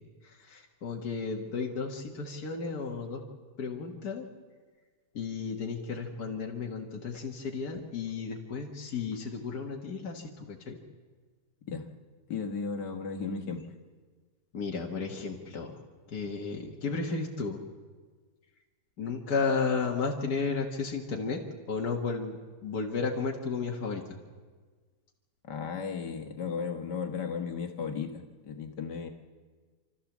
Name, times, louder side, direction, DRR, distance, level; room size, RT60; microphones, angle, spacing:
voice 1, 0.0-3.2 3.6-4.3 5.1-10.8 14.5-15.7 16.1-17.6 19.0-21.4 21.7-22.4 22.6-24.0, left 4 dB, 65° left, -1 dB, 2.1 m, -33 dB
voice 2, 12.3-13.6 25.4-29.1, left 5 dB, 85° left, 4 dB, 2.2 m, -35 dB
28.5 x 13.0 x 7.3 m, 1.5 s
omnidirectional pair, 1.8 m